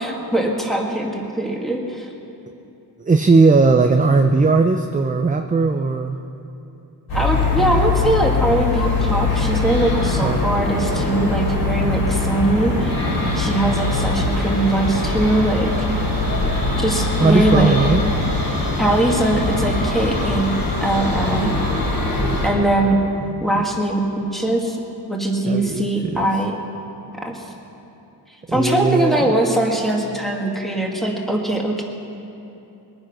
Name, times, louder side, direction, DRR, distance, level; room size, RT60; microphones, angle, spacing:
voice 1, 0.0-2.1 7.1-13.0 13.3-15.7 16.8-17.8 18.8-21.5 22.4-23.0 23.4-24.8 25.1-26.6 27.2-27.4 28.5-31.8, right 1 dB, ahead, -1 dB, 2.1 m, -21 dB
voice 2, 3.0-6.2 10.2-10.4 17.2-18.0 22.2-23.7 25.5-26.3 28.5-29.2, right 3 dB, 20° right, 5 dB, 0.5 m, -18 dB
sound 1, 7.1-22.5, left 2 dB, 60° left, 4.2 m, -22 dB
22.0 x 9.8 x 6.0 m, 2.9 s
wide cardioid pair, 115°, 43 cm